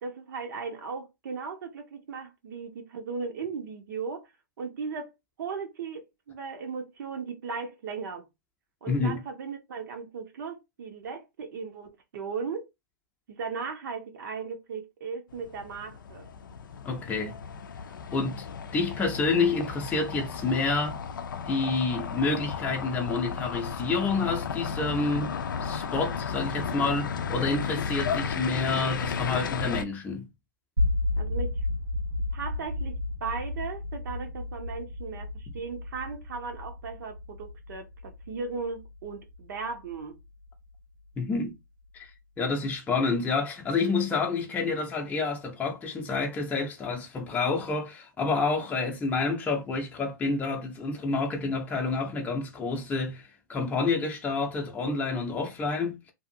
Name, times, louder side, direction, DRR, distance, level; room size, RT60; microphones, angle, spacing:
voice 1, 0.0-4.3 4.6-5.1 5.4-8.3 8.8-12.7 13.3-16.3 31.2-31.6 32.3-40.2, right 5 dB, 65° right, 0.8 m, -37 dB
voice 2, 8.9-9.2 16.9-17.4 18.1-18.4 18.7-21.0 21.5-25.3 25.6-30.2 41.2-41.6 41.9-42.1 42.4-56.1, left 3 dB, 15° left, 0.6 m, -28 dB
sound 1, 15.3-29.8, left 6 dB, 80° left, 0.4 m, -34 dB
sound 2, 30.8-40.8, left 2 dB, 90° right, 1.0 m, -33 dB
2.7 x 2.4 x 2.6 m
hypercardioid pair, 120°, 11 cm